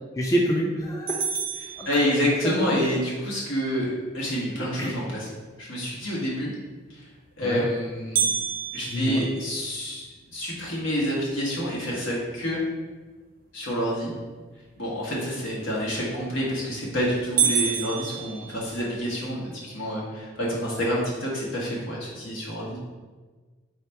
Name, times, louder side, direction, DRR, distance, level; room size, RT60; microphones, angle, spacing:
voice 1, 0.2-1.2 1.8-2.2 2.4-2.8 4.8-4.9 7.4-7.6 8.9-9.2, equal, 15° left, -2 dB, 0.4 m, -27 dB
sound 1, 1.1-2.6 8.1-10.3 10.8-10.9 11.4-11.5 12.2-12.5 16.1-16.5 16.9-17.0 17.4-19.1, right 7 dB, 45° right, 0.5 m, -28 dB
voice 2, 1.8-5.3 5.6-6.5 6.9-7.0 7.4-8.3 8.7-12.6 13.5-14.1 14.8-22.8, equal, 90° left, -4 dB, 1.4 m, -28 dB
4.1 x 2.9 x 4.5 m, 1.3 s
head